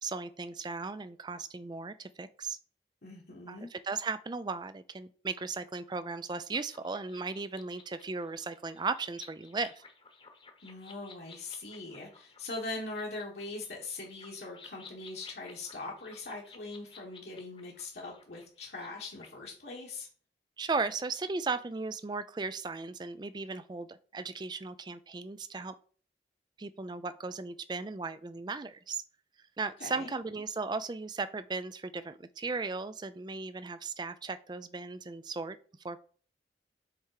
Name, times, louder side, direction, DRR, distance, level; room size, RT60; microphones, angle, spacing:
voice 1, 0.0-2.6 3.5-9.8 20.6-25.7 26.6-29.0 29.6-35.6 35.8-36.0, right 4 dB, 25° right, 13 dB, 0.4 m, -36 dB
voice 2, 3.0-3.7 10.6-20.1 29.8-30.1, left 2 dB, 60° left, -3 dB, 1.3 m, -41 dB
sound 1, 6.5-19.3, left 4 dB, 30° left, 1.0 m, -55 dB
7.3 x 3.5 x 4.8 m, 0.43 s
head